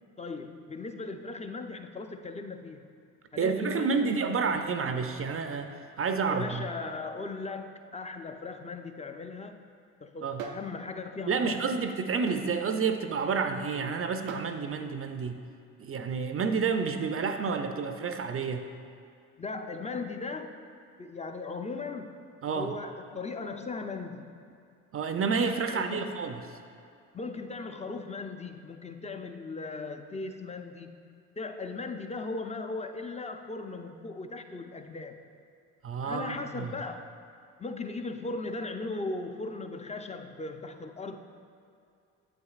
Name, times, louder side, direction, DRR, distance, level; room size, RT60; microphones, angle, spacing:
voice 1, 0.2-2.9 3.3-4.2 6.2-9.6 10.0-11.8 19.4-20.6 21.0-22.2 22.5-24.3 25.7-26.2 27.1-31.0 31.4-35.2 36.0-37.1 37.6-41.2, left 3 dB, 15° left, 6 dB, 0.5 m, -38 dB
voice 2, 3.3-6.7 10.2-10.4 11.3-15.4 15.8-18.6 22.4-22.7 24.9-26.4 35.8-36.7, right 5 dB, 35° right, 7 dB, 0.5 m, -30 dB
sound 1, 10.4-10.7 12.3-12.5 14.3-14.5, right 8 dB, 80° right, 0.6 m, -39 dB
8.6 x 7.7 x 2.4 m, 2.4 s
hypercardioid pair, 50°, 41 cm